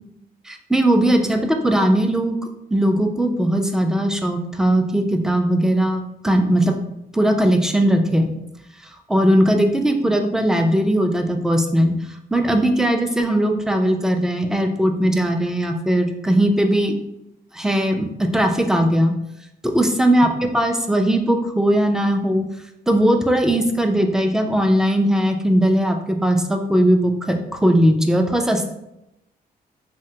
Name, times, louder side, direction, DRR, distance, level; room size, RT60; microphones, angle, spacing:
voice 1, 0.5-2.4 2.7-6.7 7.1-8.3 8.8-11.9 12.3-16.9 17.5-19.1 19.7-22.4 22.9-28.7, right 1 dB, 5° right, 5 dB, 0.4 m, -19 dB
3.2 x 2.1 x 2.8 m, 0.85 s
cardioid pair, 85°, 16 cm